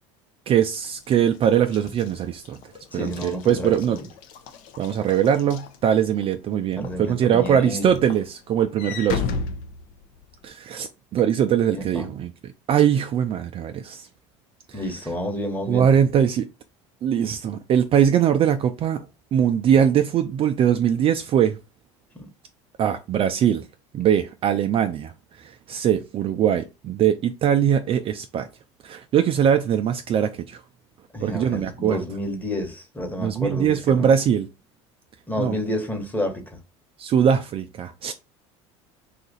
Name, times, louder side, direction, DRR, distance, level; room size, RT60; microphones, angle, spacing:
voice 1, 0.5-2.6 2.9-4.0 4.8-9.3 10.4-12.3 12.7-14.1 14.7-14.8 15.7-16.5 17.0-19.1 19.3-21.6 22.8-23.7 23.9-25.1 25.4-28.5 28.8-30.6 31.2-32.0 33.2-34.5 35.4-35.6 37.0-38.1, right 9 dB, 40° right, 0.3 m, -21 dB
Walk footsteps / Slam, 0.6-6.3 6.8-7.1 7.5-10.5, left 5 dB, 65° left, 0.6 m, -35 dB
voice 2, 2.9-4.1 6.8-8.0 11.7-12.1 14.7-15.9 22.1-22.3 31.1-34.1 35.3-36.4, left 1 dB, 10° left, 1.1 m, -30 dB
2.8 x 2.4 x 4.0 m
supercardioid pair, 90°, 15 cm